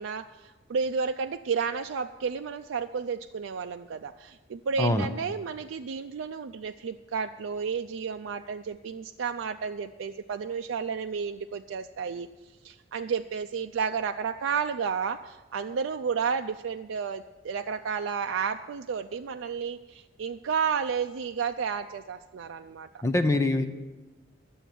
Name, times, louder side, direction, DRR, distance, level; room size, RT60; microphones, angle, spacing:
voice 1, 0.0-12.3 12.6-23.0, right 6 dB, 90° right, 6 dB, 0.4 m, -32 dB
voice 2, 23.0-23.7, left 2 dB, 15° left, 7 dB, 0.7 m, -24 dB
12.0 x 7.1 x 9.2 m, 1.2 s
head